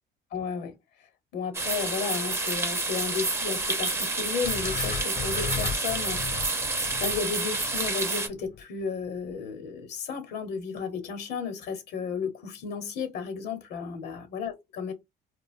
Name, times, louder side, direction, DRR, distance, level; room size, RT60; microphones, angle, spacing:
voice 1, 0.3-0.8 1.3-14.9, left 6 dB, 75° left, 0.9 m, -33 dB
sound 1, 1.5-8.3, right 3 dB, 15° right, 0.5 m, -29 dB
sound 2, 4.4-8.6, left 6 dB, 55° left, 0.7 m, -36 dB
2.5 x 2.1 x 2.5 m
cardioid pair, 110°, 17 cm